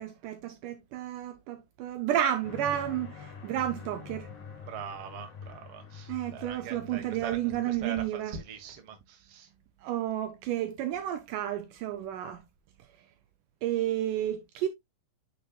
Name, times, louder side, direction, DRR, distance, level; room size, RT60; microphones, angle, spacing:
voice 1, 0.0-4.3 6.1-8.4 9.8-12.4 13.6-14.7, right 12 dB, 80° right, 2.1 m, -31 dB
sound 1, 2.4-7.7, left 6 dB, 60° left, 4.3 m, -45 dB
voice 2, 4.7-7.4 7.7-9.5, right 7 dB, 50° right, 1.9 m, -42 dB
9.3 x 5.0 x 2.3 m
omnidirectional pair, 3.9 m